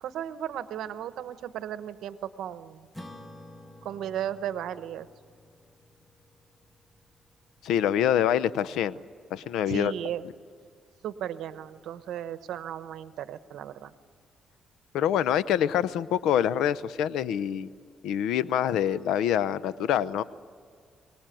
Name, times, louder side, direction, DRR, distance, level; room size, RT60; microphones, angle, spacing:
voice 1, 0.0-2.9 3.8-5.1 9.7-10.2 11.0-13.9, right 10 dB, 80° right, 12 dB, 1.0 m, -35 dB
Acoustic guitar / Strum, 2.9-7.7, left 1 dB, 10° left, 2.1 m, -50 dB
voice 2, 7.6-9.0 9.3-9.9 14.9-17.7 18.0-20.2, left 10 dB, 85° left, 16 dB, 0.7 m, -25 dB
24.0 x 19.5 x 9.2 m, 2.1 s
cardioid pair, 90°, 0 cm